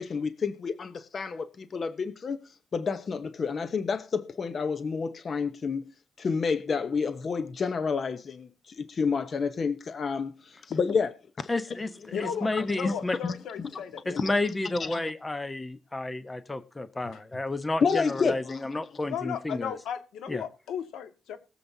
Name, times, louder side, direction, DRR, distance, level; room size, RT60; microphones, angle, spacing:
voice 1, 0.0-2.4 2.7-5.8 6.2-11.1 11.4-11.5 12.6-12.9 13.2-13.3 14.2-14.3 14.8-15.0 17.8-18.6, left 5 dB, 40° left, 0.9 m, -29 dB
voice 2, 11.5-11.9 12.2-13.2 14.1-19.7 20.3-20.4, left 2 dB, 15° left, 0.9 m, -31 dB
voice 3, 12.1-14.2 17.1-17.2 19.1-21.4, left 8 dB, 85° left, 1.6 m, -35 dB
21.5 x 7.6 x 2.7 m
cardioid pair, 115°, 0 cm